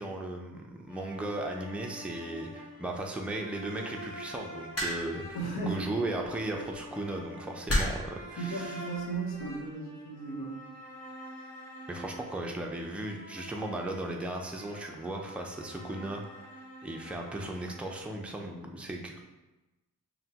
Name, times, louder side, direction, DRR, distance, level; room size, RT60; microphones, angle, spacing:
voice 1, 0.0-8.8 11.9-19.2, right 1 dB, 5° right, 1 dB, 0.4 m, -36 dB
sound 1, 0.9-18.0, equal, 20° left, 1.1 m, -47 dB
sound 2, 4.8-5.3 6.5-6.7 7.7-8.2 9.1-9.4, left 1 dB, 45° left, 1.1 m, -30 dB
voice 2, 5.3-5.9 8.4-10.6, right 3 dB, 90° left, -3 dB, 0.9 m, -35 dB
5.7 x 2.2 x 2.8 m, 1.1 s
wide cardioid pair, 105°, 36 cm